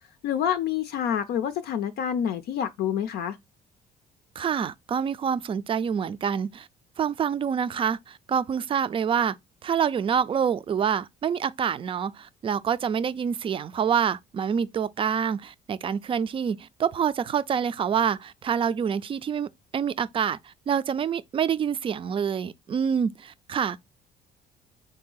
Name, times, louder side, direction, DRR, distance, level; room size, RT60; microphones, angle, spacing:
voice 1, 0.2-3.4, left 9 dB, 70° left, 0.5 m, -27 dB
voice 2, 4.4-6.7 7.0-9.4 9.6-23.8, right 7 dB, 30° right, 0.4 m, -27 dB
3.9 x 2.7 x 3.8 m
cardioid pair, 110°, 17 cm